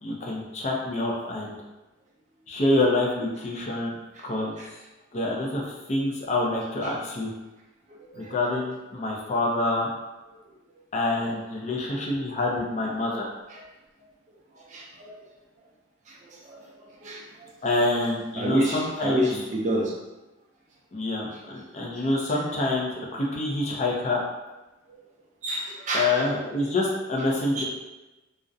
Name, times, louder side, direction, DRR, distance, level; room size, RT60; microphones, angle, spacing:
voice 1, 0.0-1.6 2.5-4.0 4.2-4.5 5.1-7.3 8.1-9.9 10.9-13.3 17.6-19.4 20.9-24.2 25.9-27.6, left 2 dB, 35° left, -2 dB, 0.4 m, -26 dB
voice 2, 7.9-8.3 13.5-13.6 14.7-15.1 16.5-16.6 17.0-17.2 18.4-19.9 25.4-26.2 27.6-27.7, equal, 35° right, -2 dB, 0.4 m, -29 dB
2.4 x 2.0 x 2.5 m, 1.1 s
head